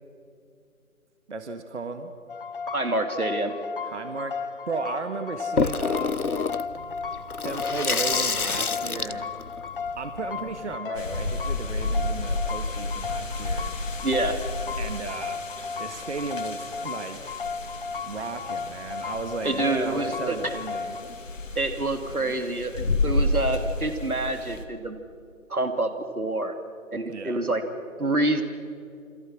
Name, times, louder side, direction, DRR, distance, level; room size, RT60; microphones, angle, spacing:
voice 1, 1.3-2.2 3.8-6.3 7.4-9.3 10.0-13.7 14.8-15.4 15.8-17.2 18.0-21.0 27.1-27.5, right 4 dB, 50° right, 7 dB, 1.8 m, -35 dB
sound 1, 2.3-21.0, left 5 dB, 40° left, 1.0 m, -35 dB
voice 2, 2.7-3.6 14.0-14.4 19.4-20.5 21.6-25.0 25.5-26.6 26.9-27.6 28.0-28.4, right 2 dB, 85° right, 7 dB, 2.8 m, -27 dB
Water tap faucet / Sink (filling or washing), 5.6-10.8, left 4 dB, 85° left, 1.1 m, -28 dB
sound 2, 10.9-24.6, left 2 dB, 60° left, 2.8 m, -31 dB
28.0 x 26.5 x 6.2 m, 2.5 s
figure-of-eight pair, 150°, 43 cm